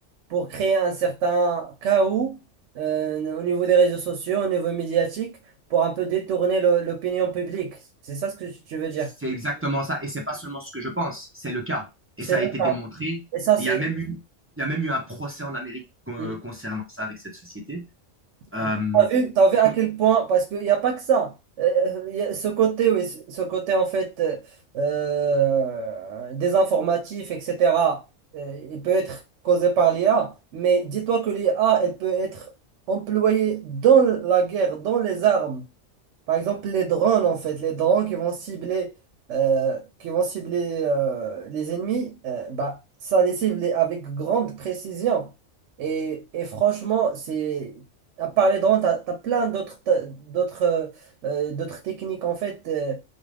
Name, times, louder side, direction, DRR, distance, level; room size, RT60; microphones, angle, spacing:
voice 1, 0.3-2.4 2.8-5.3 5.7-7.8 8.1-9.1 12.3-12.8 13.3-13.8 16.2-16.4 18.6-24.4 24.7-28.0 28.3-29.2 29.4-32.5 32.9-35.6 36.3-38.9 39.3-42.8 43.0-45.3 45.8-47.8 48.2-50.9 51.2-53.0, right 6 dB, 80° right, 0.9 m, -23 dB
voice 2, 9.2-11.9 12.2-13.2 13.6-14.2 14.6-17.8 18.5-19.1, right 1 dB, 20° right, 0.3 m, -30 dB
2.4 x 2.2 x 3.2 m
omnidirectional pair, 1.2 m